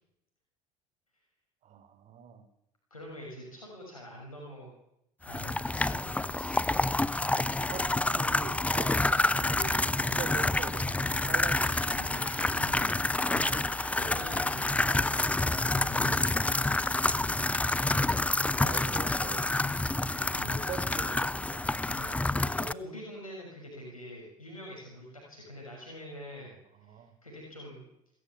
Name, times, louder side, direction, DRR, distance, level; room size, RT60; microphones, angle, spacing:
voice 1, 1.6-2.5 7.7-12.1 16.0-16.1 17.7-18.0 18.6-19.6 20.4-21.6 26.7-27.1, right 8 dB, 40° right, 11 dB, 4.0 m, -44 dB
voice 2, 2.9-4.7 5.2-6.6 11.5-16.5 19.9-20.6 21.9-26.6 26.9-27.8, equal, 85° left, -2 dB, 6.3 m, -46 dB
sound 1, 5.3-22.7, left 2 dB, 10° left, 0.8 m, -28 dB
27.5 x 14.5 x 8.5 m, 0.79 s
figure-of-eight pair, 65°, 18 cm